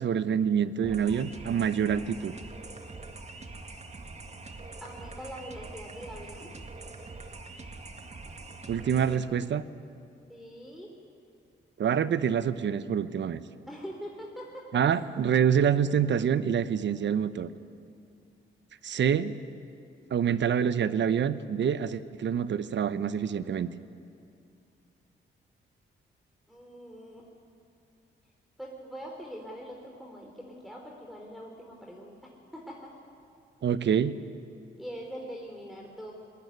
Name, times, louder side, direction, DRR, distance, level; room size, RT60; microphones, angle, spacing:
voice 1, 0.0-2.3 8.7-9.6 11.8-13.4 14.7-17.5 18.8-19.3 20.1-23.7 33.6-34.1, right 8 dB, 65° right, 14 dB, 1.0 m, -26 dB
sound 1, 0.8-9.2, right 3 dB, 35° right, 2.2 m, -44 dB
voice 2, 4.8-6.5 10.3-10.9 13.7-15.1 26.5-27.3 28.6-33.0 34.8-36.1, equal, ahead, -1 dB, 3.8 m, -43 dB
20.5 x 20.5 x 9.6 m, 2.5 s
cardioid pair, 65°, 20 cm